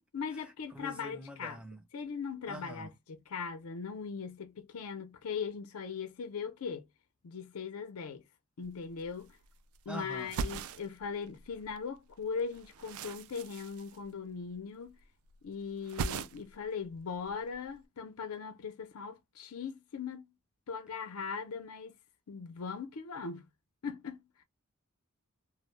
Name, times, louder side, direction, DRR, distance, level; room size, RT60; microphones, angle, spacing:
voice 1, 0.1-1.6 1.9-6.9 7.2-8.2 8.6-9.4 9.9-15.0 15.4-20.3 20.7-22.0 22.3-23.5 23.8-24.2, left 5 dB, 90° left, 0.5 m, -39 dB
voice 2, 0.7-1.8 2.5-2.9 9.9-10.3, equal, 5° right, 0.4 m, -44 dB
sound 1, 8.6-8.7 8.9-9.8 10.1-11.8 12.1-14.6 14.8-15.4 15.6-16.7 16.9-17.7, right 5 dB, 85° right, 0.3 m, -40 dB
2.1 x 2.0 x 3.0 m
head